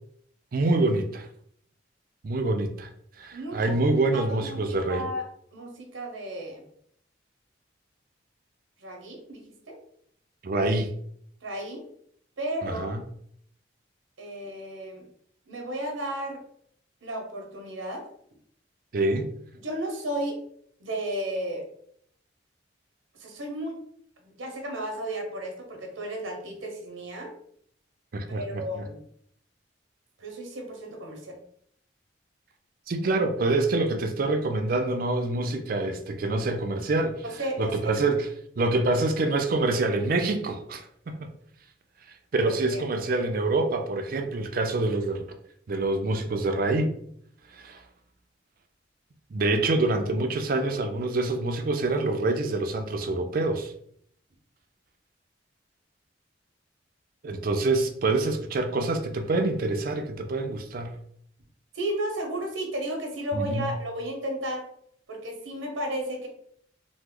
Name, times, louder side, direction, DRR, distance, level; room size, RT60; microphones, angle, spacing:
voice 1, 0.5-1.3 2.2-2.9 3.2-5.1 10.4-10.9 12.6-13.0 18.9-19.3 28.1-28.8 32.9-37.2 37.6-41.3 42.3-45.3 45.7-47.0 47.5-47.8 49.3-53.7 57.2-60.9 63.3-63.7, right 2 dB, 45° right, 6 dB, 0.4 m, -26 dB
voice 2, 3.3-3.8 4.1-5.2 5.5-6.6 8.8-9.4 9.7-9.8 11.4-11.8 12.4-12.9 14.2-15.0 15.5-16.4 17.0-18.0 19.5-20.4 20.8-21.6 23.2-23.8 24.2-27.3 28.3-29.0 30.2-31.4 37.2-37.9 42.4-42.8 61.7-64.6 65.1-66.3, right 1 dB, 85° right, 2 dB, 0.8 m, -33 dB
3.0 x 2.0 x 3.6 m, 0.66 s
head